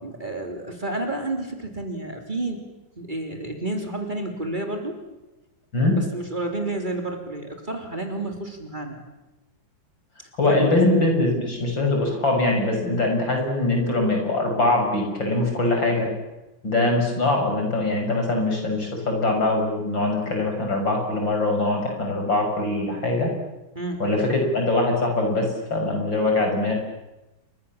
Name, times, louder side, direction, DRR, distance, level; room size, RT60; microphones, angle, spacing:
voice 1, 0.0-2.6 3.0-5.0 5.8-9.0 10.5-10.9 23.8-24.1, right 2 dB, 25° right, 4 dB, 3.6 m, -30 dB
voice 2, 10.4-16.1 16.6-23.3 24.0-26.7, left 2 dB, 75° left, 2 dB, 6.9 m, -22 dB
29.0 x 24.0 x 7.3 m, 1.0 s
omnidirectional pair, 2.1 m